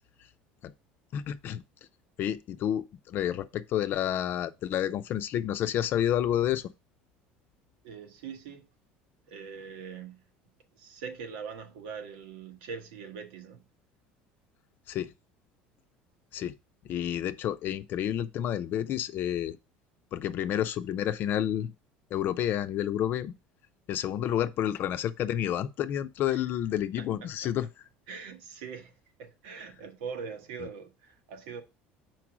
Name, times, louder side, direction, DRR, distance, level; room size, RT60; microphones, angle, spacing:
voice 1, 1.1-1.6 2.2-6.7 14.9-15.1 16.3-16.5 16.8-19.6 20.1-21.7 22.1-23.3 23.9-27.7, left 10 dB, 55° left, 0.6 m, -30 dB
voice 2, 7.8-8.6 9.3-10.2 10.7-13.6 26.3-26.4 27.0-27.5 28.1-28.9 29.2-31.6, right 6 dB, 90° right, 1.2 m, -42 dB
4.7 x 4.6 x 6.1 m
supercardioid pair, 110°, 4 cm